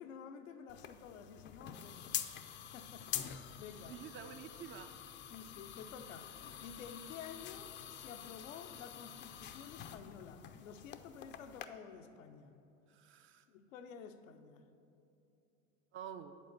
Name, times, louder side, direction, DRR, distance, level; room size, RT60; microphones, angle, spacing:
voice 1, 0.0-2.2 2.6-4.0 5.3-6.3 6.6-12.5 13.5-14.6, left 7 dB, 85° left, 7 dB, 0.6 m, -51 dB
sound 1, 0.7-11.7, left 10 dB, 30° left, 0.4 m, -46 dB
voice 2, 3.9-5.0 12.9-13.5 15.9-16.3, right 9 dB, 35° right, 10 dB, 0.4 m, -49 dB
8.2 x 4.2 x 6.5 m, 2.8 s
hypercardioid pair, 85°, 38 cm